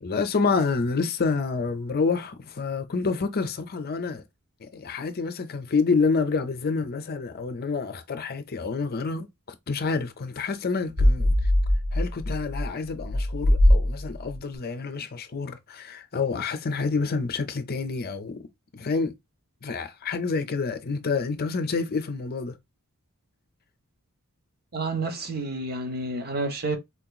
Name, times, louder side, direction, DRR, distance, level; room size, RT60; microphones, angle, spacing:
voice 1, 0.0-4.2 4.6-9.3 9.7-11.5 11.9-18.5 18.7-19.1 19.6-22.6, left 4 dB, 45° left, 0.6 m, -28 dB
sound 1, 10.9-14.4, left 1 dB, 80° right, 1.4 m, -22 dB
voice 2, 24.7-26.8, right 2 dB, 45° right, 1.0 m, -29 dB
4.5 x 2.9 x 2.2 m
head